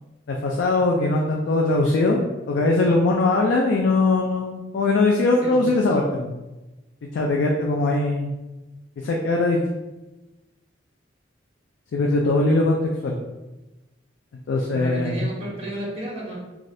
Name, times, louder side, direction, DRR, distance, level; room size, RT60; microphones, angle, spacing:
voice 1, 0.3-2.2 2.5-6.4 7.1-8.3 9.0-9.6 11.9-13.1 14.5-15.3, left 2 dB, 75° left, 0 dB, 0.3 m, -21 dB
voice 2, 14.7-16.4, right 1 dB, 35° right, -5 dB, 1.1 m, -32 dB
3.2 x 2.4 x 2.6 m, 1.1 s
head